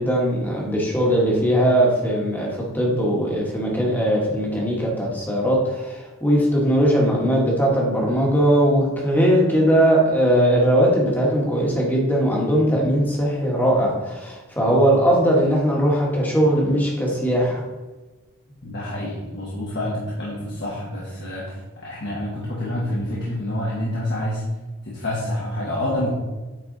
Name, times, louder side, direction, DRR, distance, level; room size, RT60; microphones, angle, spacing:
voice 1, 0.0-17.6, equal, 10° left, -3 dB, 1.6 m, -19 dB
voice 2, 18.6-24.4 24.8-26.1, left 1 dB, 50° left, -6 dB, 1.5 m, -28 dB
9.1 x 4.3 x 4.0 m, 1.2 s
head